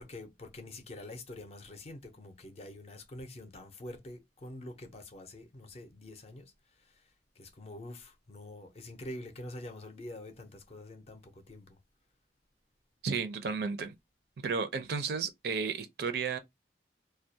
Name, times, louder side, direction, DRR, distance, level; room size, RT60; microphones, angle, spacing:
voice 1, 0.0-7.1 7.4-11.8, left 1 dB, 35° left, 0.5 m, -46 dB
voice 2, 13.0-14.0 14.4-16.4, right 5 dB, 60° right, 0.4 m, -33 dB
2.2 x 2.0 x 2.6 m
head